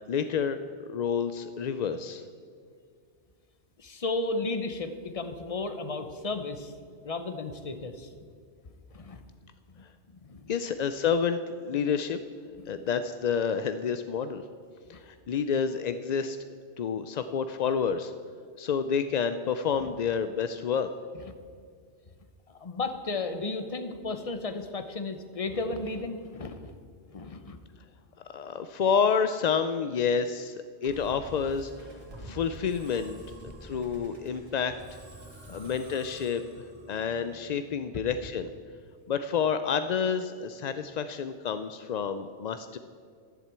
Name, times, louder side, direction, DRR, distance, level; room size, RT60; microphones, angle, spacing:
voice 1, 0.1-2.2 10.5-12.2 12.7-14.4 14.9-16.4 16.8-18.1 18.6-20.9 28.3-31.9 32.2-33.2 33.6-34.8 35.5-38.5 39.1-42.8, left 6 dB, 60° left, 10 dB, 0.4 m, -29 dB
voice 2, 3.8-6.7 7.0-8.1 8.9-9.3 9.7-9.8 10.1-10.5 14.9-15.0 21.3-21.4 22.5-26.7 27.1-27.6 35.5-35.7, left 3 dB, 35° left, 9 dB, 0.8 m, -34 dB
Musical instrument, 30.8-38.2, right 1 dB, 55° right, 2.8 m, -48 dB
12.0 x 7.4 x 8.1 m, 2.2 s
omnidirectional pair, 1.2 m